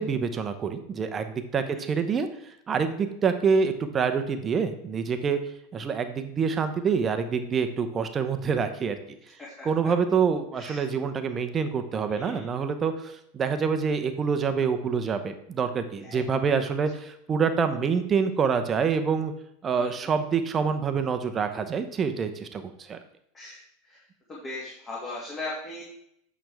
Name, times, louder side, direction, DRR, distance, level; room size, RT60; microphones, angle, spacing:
voice 1, 0.0-2.3 2.7-5.4 5.7-9.0 9.6-19.3 19.6-23.0, right 6 dB, 25° right, 8 dB, 0.8 m, -26 dB
voice 2, 1.7-2.0 9.4-9.7 10.6-10.8 12.1-12.5 16.0-16.2 19.8-20.1 23.3-23.6 23.9-24.0 24.3-25.8, left 2 dB, 25° left, -5 dB, 2.2 m, -38 dB
8.8 x 6.1 x 3.5 m, 0.75 s
figure-of-eight pair, 85°, 0 cm